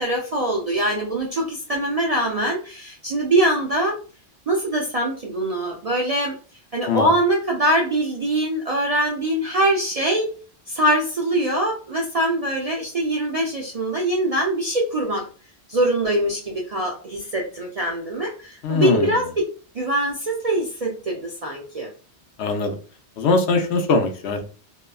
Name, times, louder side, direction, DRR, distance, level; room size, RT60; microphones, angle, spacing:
voice 1, 0.0-4.0 4.5-6.3 6.7-10.3 10.7-15.3 15.7-21.9, right 1 dB, 55° right, -1 dB, 0.4 m, -23 dB
voice 2, 18.6-19.2 22.4-22.8 23.2-24.4, left 4 dB, 70° left, 4 dB, 0.8 m, -21 dB
2.9 x 2.2 x 2.2 m, 0.38 s
omnidirectional pair, 1.2 m